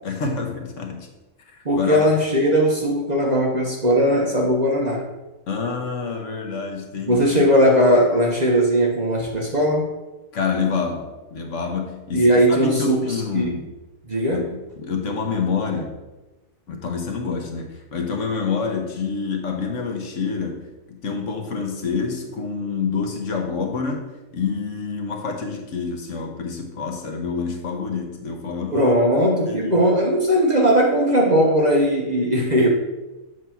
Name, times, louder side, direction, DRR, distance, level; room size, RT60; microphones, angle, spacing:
voice 1, 0.0-1.1 1.5-2.1 5.5-7.5 10.3-13.8 14.3-16.0 16.7-29.0 29.4-29.9, left 5 dB, 70° left, 3 dB, 1.2 m, -27 dB
voice 2, 1.6-5.1 7.1-9.9 12.1-13.0 13.3-13.5 14.1-14.4 28.7-32.7, equal, 40° right, -1 dB, 0.8 m, -18 dB
7.5 x 2.9 x 5.7 m, 1.1 s
omnidirectional pair, 1.4 m